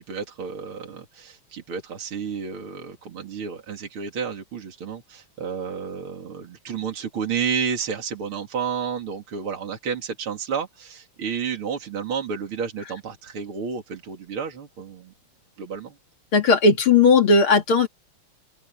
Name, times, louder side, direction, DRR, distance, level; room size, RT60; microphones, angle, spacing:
voice 1, 0.0-15.1 15.6-15.9, right 6 dB, 70° right, 3.4 m, -31 dB
voice 2, 16.3-17.9, left 4 dB, 70° left, 3.5 m, -16 dB
open air
omnidirectional pair, 2.4 m